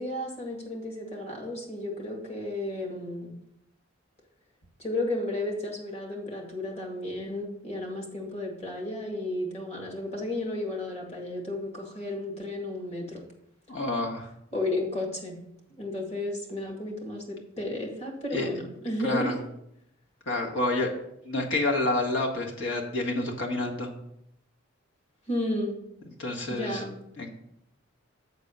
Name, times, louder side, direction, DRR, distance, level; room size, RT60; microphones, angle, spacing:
voice 1, 0.0-3.3 4.8-13.2 14.5-15.4 15.8-19.4 25.3-25.8 26.5-27.0, left 1 dB, 30° left, 0 dB, 2.0 m, -33 dB
voice 2, 13.7-14.3 18.3-18.5 19.0-19.3 20.3-20.9 21.2-23.9 26.2-26.8 27.2-27.3, left 2 dB, 60° left, 0 dB, 1.7 m, -28 dB
8.5 x 4.1 x 6.6 m, 0.77 s
head